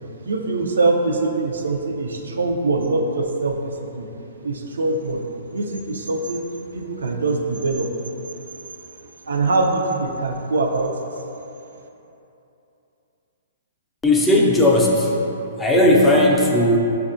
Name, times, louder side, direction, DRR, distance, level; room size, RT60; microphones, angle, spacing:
voice 1, 0.2-4.1 4.4-5.2 5.5-6.5 6.7-7.9 9.3-10.9, right 3 dB, 90° right, 2 dB, 0.3 m, -23 dB
voice 2, 14.0-15.1 15.6-16.8, left 1 dB, 10° left, -2 dB, 0.4 m, -16 dB
5.3 x 2.2 x 2.5 m, 2.9 s
hypercardioid pair, 145°, 0 cm